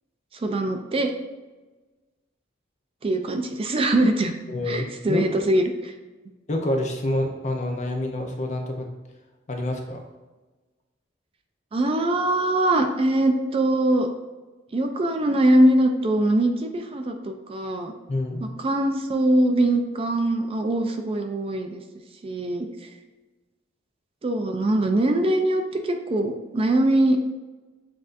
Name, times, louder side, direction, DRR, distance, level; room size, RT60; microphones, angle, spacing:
voice 1, 0.3-1.1 3.0-4.3 4.7-5.9 11.7-14.1 14.7-17.9 18.4-21.8 22.2-22.9 24.2-27.2, right 1 dB, 30° right, 5 dB, 0.4 m, -22 dB
voice 2, 4.5-5.2 6.5-8.9 9.5-10.0 18.1-18.4, left 1 dB, 40° left, 2 dB, 0.6 m, -27 dB
7.6 x 2.5 x 2.6 m, 1.2 s
head